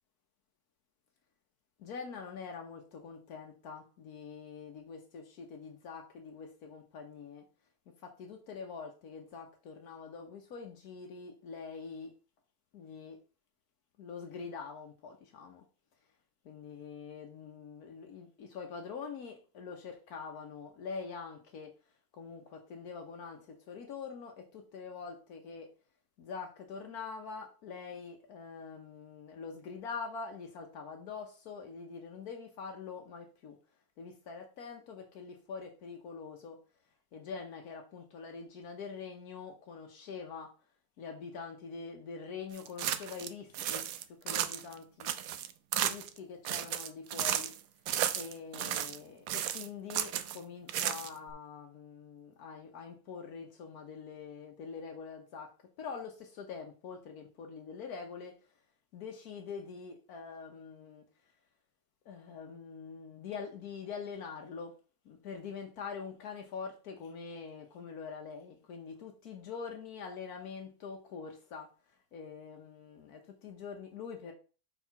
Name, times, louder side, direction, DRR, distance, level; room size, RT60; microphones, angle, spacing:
voice 1, 1.8-7.4 7.9-12.1 12.7-13.2 14.0-15.6 16.4-25.7 26.2-33.6 34.0-36.6 37.1-40.5 41.0-45.1 45.8-47.5 48.1-55.5 55.8-58.6 58.9-61.0 62.0-64.7 65.0-74.3, left 5 dB, 80° left, 3 dB, 1.4 m, -44 dB
sound 1, 42.6-43.3 43.5-44.7 45.0-46.2 46.4-47.6 47.9-49.0 49.3-50.4 50.7-51.3, right 10 dB, 75° right, 1.0 m, -34 dB
4.8 x 4.6 x 5.7 m, 0.35 s
omnidirectional pair, 1.6 m